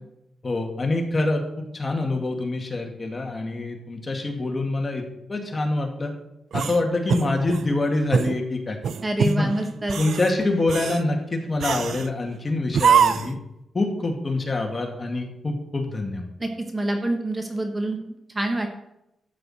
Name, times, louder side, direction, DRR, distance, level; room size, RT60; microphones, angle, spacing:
voice 1, 0.4-5.0 5.3-6.1 6.5-8.8 9.2-9.5 10.0-13.4 13.7-16.3, left 2 dB, 25° left, 2 dB, 2.1 m, -25 dB
sound 1, 6.5-7.7 8.1-8.4 8.8-9.4 9.8-10.3 10.7-11.0 11.6-12.1 12.7-13.4, right 7 dB, 70° right, 0.5 m, -23 dB
voice 2, 9.0-10.0 16.4-18.0 18.3-18.7, right 1 dB, 20° right, 4 dB, 1.4 m, -26 dB
12.5 x 8.4 x 4.3 m, 0.85 s
cardioid pair, 115°, 0 cm